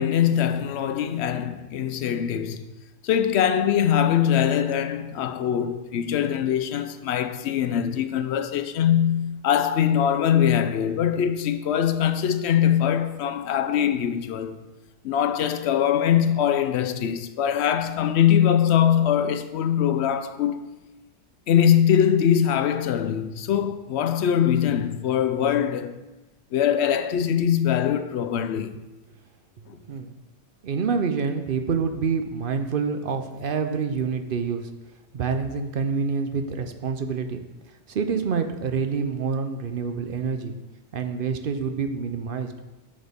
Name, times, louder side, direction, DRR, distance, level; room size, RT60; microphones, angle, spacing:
voice 1, 0.0-2.6 3.0-14.6 15.0-20.6 21.5-26.0 26.5-28.8 29.7-29.8, left 9 dB, 80° left, 0.8 m, -22 dB
voice 2, 30.6-34.7 35.1-37.4 37.9-40.6 40.9-42.5, right 5 dB, 60° right, 0.8 m, -27 dB
10.5 x 6.3 x 3.5 m
omnidirectional pair, 1.1 m